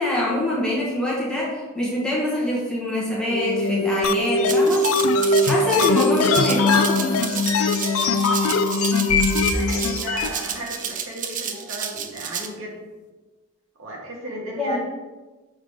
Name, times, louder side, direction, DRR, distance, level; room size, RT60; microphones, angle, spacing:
voice 1, 0.0-7.1 14.6-14.8, left 1 dB, 5° left, -6 dB, 1.6 m, -25 dB
sound 1, 3.3-10.5, left 2 dB, 85° left, 0.8 m, -22 dB
sound 2, 4.0-4.1 4.4-4.5 4.8-6.9 7.1-7.3 7.5-7.7 8.1-8.2 8.4-8.6 8.9-9.0 9.3-9.5 9.8-9.9 10.2-10.3, left 7 dB, 65° left, 0.4 m, -23 dB
Rattle (instrument), 4.5-12.5, right 8 dB, 40° right, 0.5 m, -31 dB
voice 2, 9.4-12.8 13.8-14.8, right 1 dB, 70° right, -2 dB, 1.7 m, -35 dB
6.3 x 4.0 x 4.9 m, 1.2 s
head